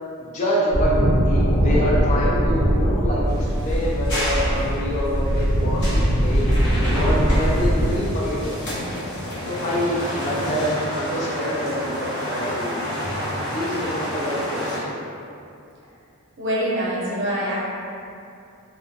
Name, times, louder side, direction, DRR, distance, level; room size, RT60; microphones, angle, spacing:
voice 1, 0.2-1.0 1.2-5.9 6.1-6.5 6.8-8.8 9.5-12.9 13.4-14.8, equal, 35° left, -6 dB, 0.4 m, -26 dB
sound 1, 0.7-8.0, equal, ahead, 0.7 m, -20 dB
sound 2, 3.3-14.8, equal, 55° left, 0.8 m, -30 dB
voice 2, 16.4-17.6, equal, 55° right, -7 dB, 0.6 m, -24 dB
2.6 x 2.2 x 2.3 m, 2.5 s
head